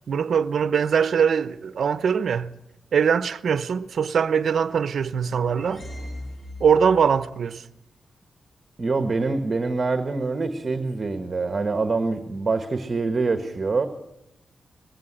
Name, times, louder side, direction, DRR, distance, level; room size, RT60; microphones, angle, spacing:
voice 1, 0.1-2.5 2.9-5.8 6.6-7.6, right 7 dB, 65° right, 0.8 m, -22 dB
sound 1, 4.9-7.2, left 1 dB, 40° left, 6.3 m, -39 dB
voice 2, 8.8-13.9, right 3 dB, 30° right, 1.3 m, -25 dB
20.0 x 15.5 x 9.9 m
wide cardioid pair, 160°, 0 cm